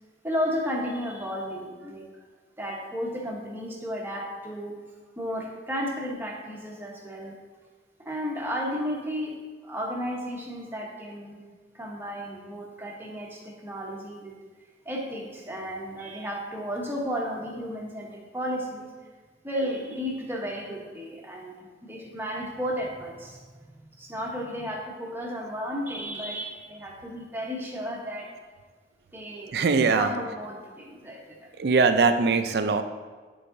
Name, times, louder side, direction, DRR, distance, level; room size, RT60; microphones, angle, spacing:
voice 1, 0.2-2.1 2.6-4.7 5.2-7.3 8.0-9.4 9.6-11.4 11.7-14.3 14.8-18.9 19.4-21.5 21.8-23.6 24.0-28.3 29.1-29.5 29.9-31.5, equal, 10° right, -2 dB, 1.0 m, -33 dB
voice 2, 29.5-30.1 31.6-32.8, right 4 dB, 65° right, 9 dB, 0.4 m, -21 dB
9.7 x 4.7 x 2.7 m, 1.4 s
head